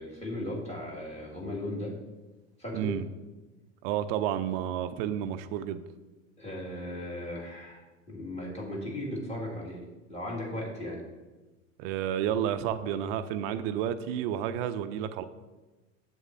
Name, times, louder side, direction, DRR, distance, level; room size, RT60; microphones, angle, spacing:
voice 1, 0.0-1.9 2.6-2.9 6.4-11.0, left 1 dB, 15° left, -3 dB, 2.0 m, -37 dB
voice 2, 2.7-3.1 3.8-5.8 11.8-15.2, right 10 dB, 50° right, 10 dB, 0.5 m, -31 dB
7.9 x 7.2 x 2.6 m, 1.2 s
figure-of-eight pair, 80°, 39 cm